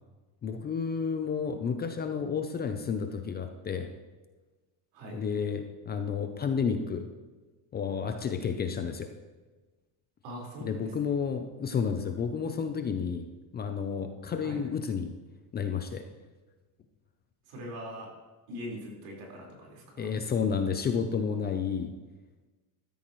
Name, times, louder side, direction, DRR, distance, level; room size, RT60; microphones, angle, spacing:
voice 1, 0.4-3.9 5.1-7.1 7.7-9.1 10.6-13.3 13.5-15.1 15.5-16.0 20.0-21.9, left 6 dB, 25° left, 6 dB, 0.5 m, -31 dB
voice 2, 10.2-10.9 14.4-14.6 17.5-18.1 18.5-20.1, equal, 80° right, -2 dB, 4.6 m, -42 dB
14.0 x 13.0 x 3.1 m, 1.3 s
cardioid pair, 165°, 44 cm